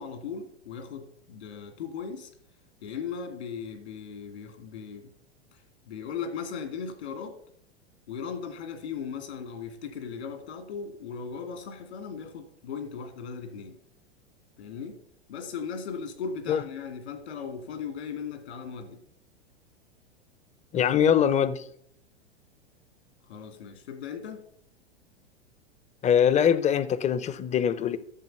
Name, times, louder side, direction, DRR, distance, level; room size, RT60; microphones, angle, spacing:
voice 1, 0.0-2.3 2.8-5.1 5.5-7.4 8.1-13.8 14.6-15.0 15.3-19.0 23.3-24.4, left 6 dB, 75° left, 2.5 m, -37 dB
voice 2, 20.7-21.6 26.0-28.0, left 8 dB, 20° left, 0.7 m, -23 dB
11.0 x 7.3 x 5.7 m
hypercardioid pair, 100°, 33 cm